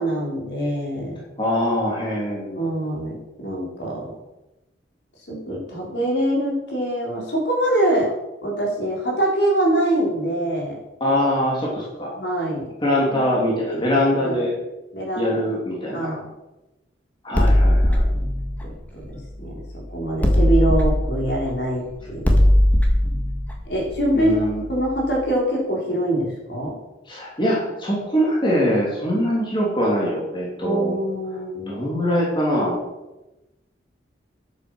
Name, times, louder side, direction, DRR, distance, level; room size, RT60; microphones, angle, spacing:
voice 1, 0.0-1.2 2.5-4.0 5.3-8.1 8.4-10.8 12.1-12.7 13.1-13.8 14.1-14.4 14.9-15.4 15.9-16.2 18.6-18.7 19.4-19.5 19.9-22.3 23.6-26.7 30.6-31.8, right 1 dB, 65° left, -2 dB, 4.4 m, -24 dB
voice 2, 1.4-2.6 11.0-12.1 12.8-14.5 15.1-16.2 17.2-18.1 24.1-24.6 27.1-30.9 31.7-32.8, equal, 25° left, -4 dB, 3.1 m, -23 dB
sound 1, 17.3-19.7 20.2-24.9, left 1 dB, 10° left, 1.7 m, -19 dB
10.0 x 8.3 x 6.4 m, 1.0 s
head